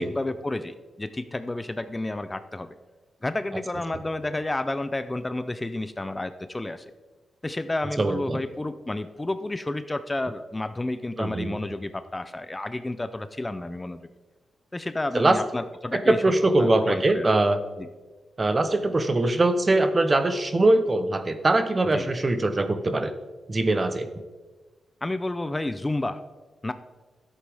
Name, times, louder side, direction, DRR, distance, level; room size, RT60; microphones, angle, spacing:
voice 1, 0.0-2.7 3.2-6.9 7.4-14.0 14.7-16.2 16.6-17.3 17.8-17.9 21.9-22.1 25.0-26.2 26.6-26.7, left 2 dB, 20° left, 11 dB, 0.5 m, -31 dB
voice 2, 8.0-8.4 11.2-11.6 15.1-15.4 15.9-17.6 18.4-23.1 23.5-24.1, right 2 dB, 30° right, 10 dB, 0.8 m, -22 dB
11.5 x 8.1 x 3.5 m, 1.3 s
cardioid pair, 80°, 0 cm